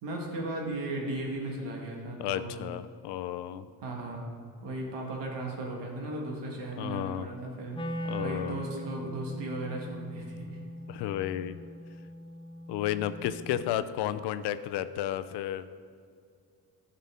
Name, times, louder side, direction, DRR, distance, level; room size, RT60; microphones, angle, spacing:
voice 1, 0.0-2.5 3.8-4.2 4.6-7.8 8.2-10.5, right 2 dB, 75° right, -1 dB, 1.8 m, -36 dB
voice 2, 2.2-3.7 6.8-7.3 8.0-8.6 10.9-11.6 12.7-15.7, left 12 dB, 70° left, 12 dB, 0.5 m, -32 dB
Wind instrument woodwind instrument, 7.7-13.8, equal, 15° left, 0.4 m, -41 dB
11.0 x 5.7 x 3.7 m, 2.2 s
cardioid pair, 110°, 43 cm